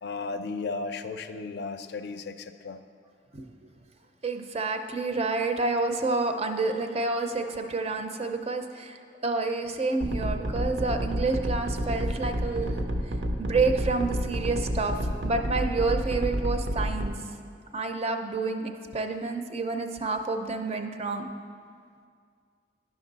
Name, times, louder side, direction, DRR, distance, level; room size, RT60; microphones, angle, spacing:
voice 1, 0.0-2.8, left 4 dB, 65° left, 9 dB, 0.4 m, -35 dB
voice 2, 4.2-12.8 13.4-14.9 15.2-17.1 17.7-21.3, right 3 dB, 35° right, 6 dB, 0.5 m, -29 dB
sound 1, 10.0-17.1, equal, 85° right, 0.7 m, -29 dB
11.0 x 6.1 x 4.0 m, 2.1 s
head